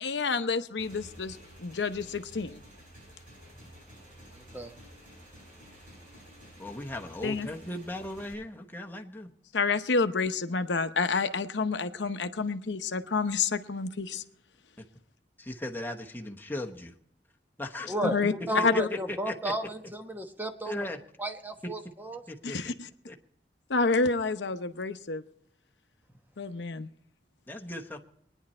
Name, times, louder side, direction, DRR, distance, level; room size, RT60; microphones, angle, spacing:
voice 1, 0.0-2.6 7.2-7.5 9.5-14.2 18.0-18.3 18.6-18.9 22.4-22.7 23.7-25.2 26.4-26.9, left 4 dB, 90° left, 9 dB, 0.8 m, -29 dB
Motorcycle / Engine, 0.8-8.3, equal, 50° right, 7.7 m, -51 dB
voice 2, 4.3-4.7 17.9-18.2 18.5-20.8 21.2-22.2, equal, 10° right, 6 dB, 1.1 m, -33 dB
voice 3, 6.6-9.3 14.8-14.9 15.4-16.9 17.6-18.1 18.6-19.5 20.6-21.0 22.3-22.7 23.1-23.2 27.5-28.0, left 1 dB, 10° left, 2 dB, 1.1 m, -37 dB
23.5 x 10.0 x 4.3 m, 0.71 s
head